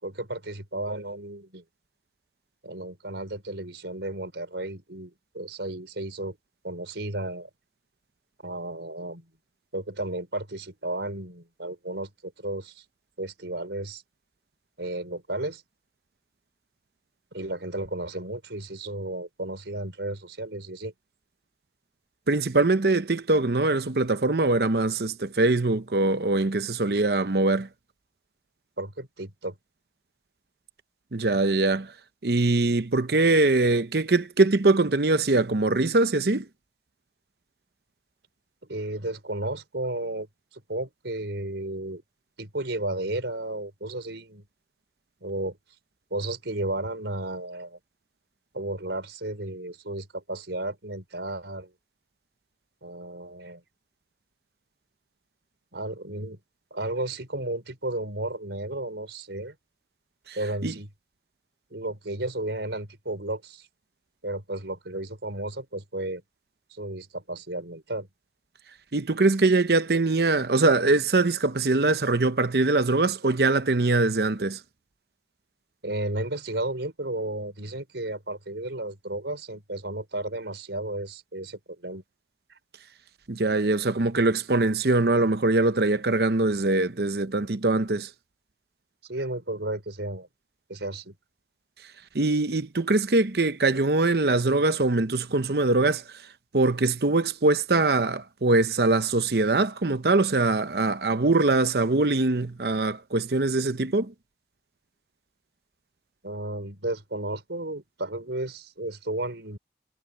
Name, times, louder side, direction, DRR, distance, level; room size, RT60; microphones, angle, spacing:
voice 1, 0.0-1.6 2.6-6.4 6.6-7.5 8.4-9.3 9.7-12.8 13.2-14.0 14.8-15.6 17.3-20.9 28.8-29.6 38.6-40.3 40.7-42.0 42.4-44.4 45.2-45.6 46.1-47.8 48.5-51.7 52.8-53.6 55.7-56.4 56.7-59.5 60.3-60.9 61.7-63.7 64.2-66.2 66.7-68.1 75.8-82.0 82.5-82.6 89.0-90.3 90.7-91.1 106.2-109.6, right 1 dB, 85° right, 4.8 m, -33 dB
voice 2, 22.3-27.7 31.1-31.9 32.2-36.5 60.3-60.4 60.6-60.7 68.9-74.6 83.3-88.1 92.1-96.0 96.5-104.1, right 2 dB, 60° right, 0.9 m, -22 dB
head